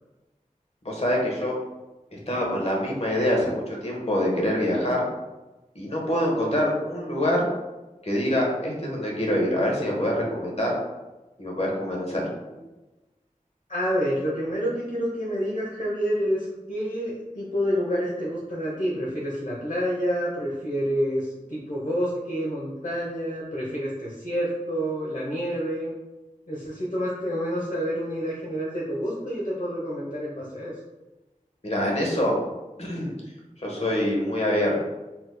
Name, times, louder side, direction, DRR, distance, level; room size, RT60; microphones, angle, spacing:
voice 1, 0.8-1.6 2.1-5.1 5.7-7.4 8.0-10.7 11.4-12.3 31.6-32.4 32.8-33.1 33.6-34.8, left 1 dB, 50° left, -2 dB, 1.2 m, -25 dB
voice 2, 13.7-25.9 26.5-30.7, equal, 65° left, -6 dB, 0.9 m, -28 dB
4.3 x 4.0 x 2.2 m, 1.1 s
wide cardioid pair, 45°, 14 cm